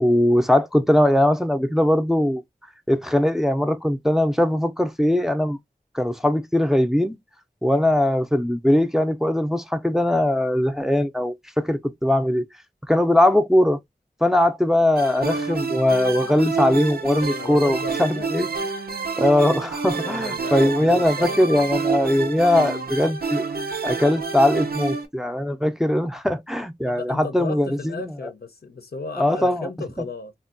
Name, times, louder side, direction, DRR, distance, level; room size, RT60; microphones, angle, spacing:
voice 1, 0.0-2.4 2.9-5.6 5.9-7.2 7.6-12.5 12.9-13.8 14.2-18.5 19.2-23.4 23.8-27.9 29.2-29.7, left 1 dB, 5° right, 0.4 m, -20 dB
sound 1, 15.0-25.1, right 4 dB, 80° right, 0.5 m, -28 dB
voice 2, 17.4-18.3 20.0-21.5 26.9-30.3, left 3 dB, 90° left, 0.6 m, -35 dB
3.4 x 2.2 x 2.4 m
wide cardioid pair, 45°, 16 cm